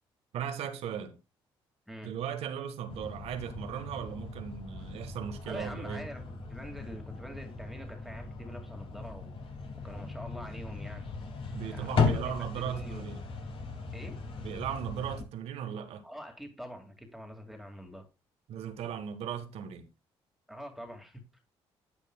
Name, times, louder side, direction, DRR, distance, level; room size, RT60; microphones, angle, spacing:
voice 1, 0.3-1.1 2.0-6.0 11.5-13.2 14.4-16.1 18.5-19.9, right 8 dB, 75° right, 1.4 m, -37 dB
sound 1, 2.9-15.2, left 4 dB, 60° left, 2.5 m, -36 dB
voice 2, 5.4-9.4 9.8-11.1 11.7-13.1 13.9-14.2 16.0-18.1 20.5-21.4, equal, ahead, 2.1 m, -45 dB
10.0 x 8.3 x 2.3 m
supercardioid pair, 75°, 11 cm